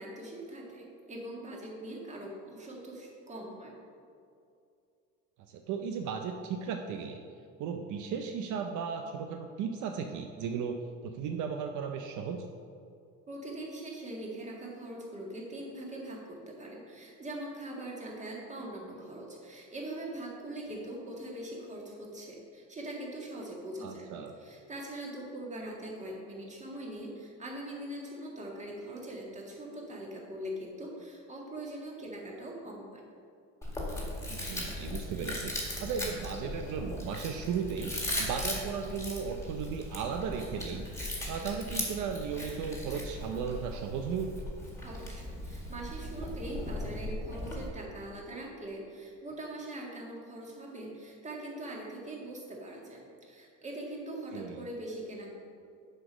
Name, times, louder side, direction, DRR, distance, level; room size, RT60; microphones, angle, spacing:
voice 1, 0.0-3.7 13.3-24.1 24.4-33.0 44.8-55.3, right 1 dB, 20° right, -2 dB, 1.8 m, -42 dB
voice 2, 5.5-7.2 7.6-12.4 23.8-24.3 34.3-35.5 35.8-37.9 38.2-40.9 41.3-44.4 54.3-54.7, right 6 dB, 70° right, 5 dB, 0.6 m, -35 dB
Chewing mastication, 33.6-47.7, left 1 dB, 10° left, 1.9 m, -38 dB
7.7 x 5.1 x 6.2 m, 2.5 s
cardioid pair, 125°, 31 cm